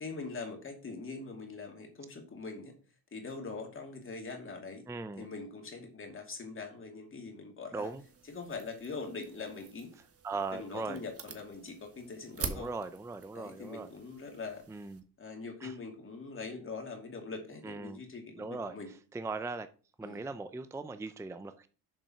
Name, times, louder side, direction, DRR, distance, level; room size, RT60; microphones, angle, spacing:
voice 1, 0.0-2.7 3.1-4.8 5.2-7.9 8.2-9.9 10.5-12.7 13.3-14.9 15.2-18.9 20.0-20.2, left 4 dB, 35° left, 2 dB, 2.6 m, -43 dB
voice 2, 4.9-5.3 7.7-8.0 10.2-11.0 12.5-13.9 14.7-15.0 15.6-15.7 17.6-18.0 18.4-18.7 19.1-19.7 20.0-21.7, right 3 dB, 10° right, 11 dB, 0.5 m, -39 dB
sound 1, 7.8-15.0, right 5 dB, 35° right, 1.4 m, -46 dB
7.3 x 5.4 x 5.7 m, 0.38 s
cardioid pair, 115°, 38 cm